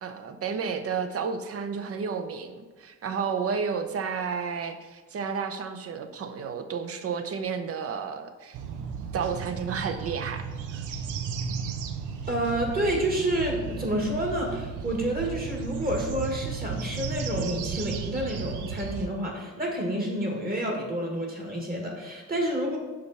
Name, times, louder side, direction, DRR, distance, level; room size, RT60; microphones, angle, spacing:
voice 1, 0.0-8.6 9.1-10.4 10.7-10.8, right 6 dB, 50° right, 8 dB, 0.7 m, -31 dB
sound 1, 8.5-19.1, right 6 dB, 85° right, 0.6 m, -34 dB
voice 2, 12.3-22.8, right 1 dB, 30° right, 0 dB, 1.9 m, -29 dB
5.8 x 5.1 x 4.2 m, 1.3 s
cardioid pair, 90°, 30 cm